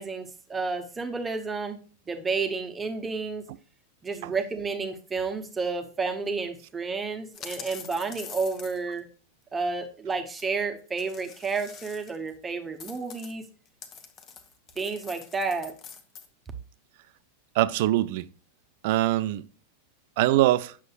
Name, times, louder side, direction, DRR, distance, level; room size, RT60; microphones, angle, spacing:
voice 1, 0.0-1.8 2.1-3.4 4.0-9.0 9.5-13.4 14.8-15.8, right 4 dB, 15° right, 0.9 m, -31 dB
sound 1, 7.3-9.0 10.4-10.5 11.0-12.3 12.8-16.3, left 6 dB, 30° left, 0.9 m, -45 dB
voice 2, 17.5-18.3 18.8-19.5 20.2-20.8, right 15 dB, 50° right, 0.4 m, -23 dB
7.8 x 6.4 x 2.3 m
figure-of-eight pair, 90°, 0 cm